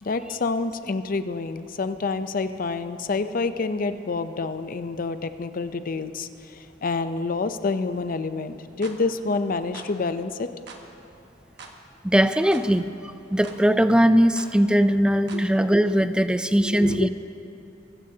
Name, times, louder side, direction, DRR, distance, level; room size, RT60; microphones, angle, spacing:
voice 1, 0.0-6.3 6.8-10.5 15.3-15.4 16.4-17.1, left 3 dB, 45° left, 10 dB, 0.6 m, -28 dB
sound 1, 8.8-9.0 9.7-9.9 10.7-10.9 11.6-11.8 12.5-12.7 13.4-13.6 14.4-14.5 15.3-15.5, right 4 dB, 60° right, 1.3 m, -43 dB
voice 2, 12.0-12.9 13.3-17.1, equal, 5° right, 11 dB, 0.4 m, -20 dB
22.5 x 15.0 x 2.8 m, 2.9 s
head